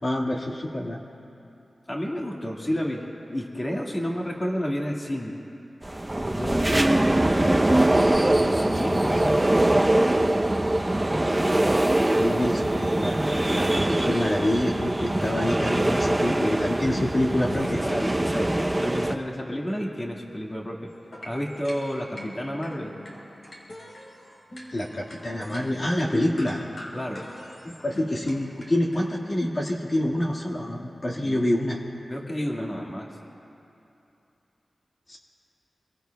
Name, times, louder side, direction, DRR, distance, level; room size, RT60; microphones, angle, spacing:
voice 1, 0.0-1.0 8.9-9.2 11.4-11.6 12.1-17.8 24.7-26.6 27.8-31.8 35.1-35.2, left 1 dB, 40° left, -3 dB, 1.8 m, -27 dB
voice 2, 1.9-5.3 6.3-6.9 8.4-9.4 12.0-12.4 17.6-20.9 21.2-22.9 26.9-27.2 31.2-31.5 32.1-33.1, equal, 20° left, -2 dB, 1.8 m, -31 dB
sound 1, 5.8-19.2, right 1 dB, 20° right, 0.7 m, -23 dB
sound 2, 20.9-29.0, left 1 dB, 55° left, 4.0 m, -43 dB
27.0 x 22.5 x 2.3 m, 2.8 s
wide cardioid pair, 90°, 0 cm